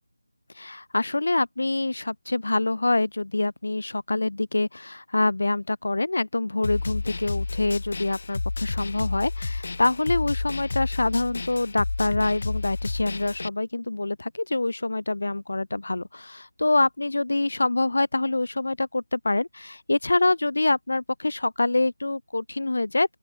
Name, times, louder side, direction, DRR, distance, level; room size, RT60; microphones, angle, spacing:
voice 1, 0.5-23.2, left 2 dB, 70° left, 3.9 m, -25 dB
Snare drum, 6.6-13.5, left 3 dB, 50° left, 5.4 m, -31 dB
open air
figure-of-eight pair, 170°, 0 cm